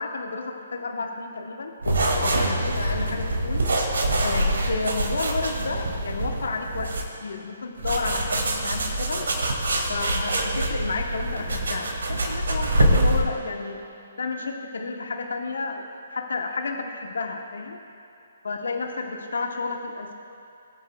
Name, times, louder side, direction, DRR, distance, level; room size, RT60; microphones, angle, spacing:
voice 1, 0.0-1.7 2.2-3.6 4.2-6.9 7.2-9.3 9.9-13.8 14.2-17.8 18.4-20.1, left 4 dB, 70° left, 3 dB, 0.9 m, -31 dB
sound 1, 1.8-7.3, equal, 85° left, 1.3 m, -32 dB
sound 2, 1.8-7.0 7.8-13.2, right 1 dB, 75° right, 1.9 m, -25 dB
19.5 x 8.8 x 2.3 m, 2.7 s
figure-of-eight pair, 135°, 0 cm